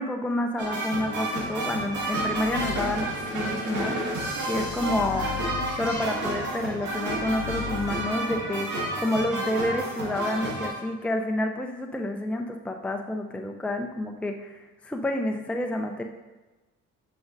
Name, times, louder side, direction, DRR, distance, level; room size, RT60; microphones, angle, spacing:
voice 1, 0.0-4.0 4.4-5.3 5.8-8.7 9.0-16.0, left 1 dB, 5° left, 4 dB, 0.5 m, -29 dB
sound 1, 0.6-10.7, right 1 dB, 75° right, 1.9 m, -30 dB
sound 2, 2.0-8.1, left 10 dB, 75° left, 0.6 m, -40 dB
9.2 x 5.2 x 2.6 m, 1.2 s
cardioid pair, 90°, 30 cm